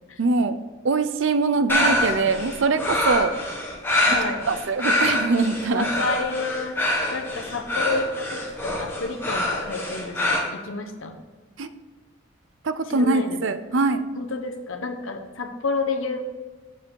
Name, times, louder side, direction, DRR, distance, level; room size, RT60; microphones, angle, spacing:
voice 1, 0.2-0.5 0.8-3.3 4.0-4.1 4.5-5.8 11.6-11.7 12.6-14.0, right 3 dB, 65° right, 11 dB, 0.6 m, -22 dB
sound 1, 1.7-10.4, left 1 dB, 10° left, 1.5 m, -25 dB
voice 2, 4.1-4.4 5.7-6.8 7.1-11.2 12.9-13.4 14.1-16.2, left 3 dB, 75° left, 5 dB, 1.1 m, -30 dB
7.6 x 6.9 x 4.7 m, 1.3 s
head